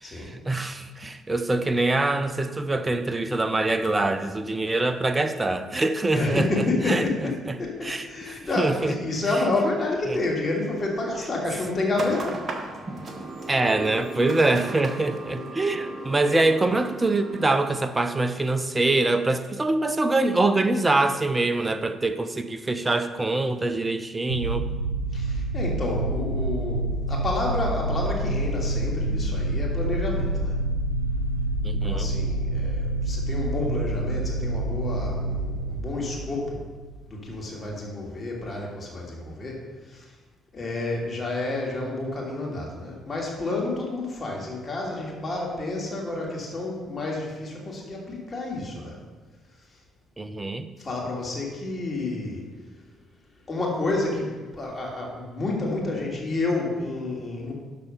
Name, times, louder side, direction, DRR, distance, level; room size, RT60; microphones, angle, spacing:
voice 1, 0.0-7.6 7.8-8.9 9.5-9.6 10.1-10.2 13.5-24.7 31.6-32.1 50.2-50.7, right 2 dB, 20° right, 11 dB, 0.7 m, -24 dB
voice 2, 6.1-7.3 7.6-12.4 25.1-30.6 31.8-36.6 37.1-40.0 40.5-49.0 50.8-52.5 53.5-57.5, left 2 dB, 30° left, -2 dB, 2.8 m, -29 dB
sound 1, 11.9-17.7, right 2 dB, 40° right, 1.2 m, -36 dB
sound 2, 24.3-37.3, right 2 dB, 90° right, 0.3 m, -27 dB
12.0 x 4.2 x 5.5 m, 1.3 s
figure-of-eight pair, 45°, 0 cm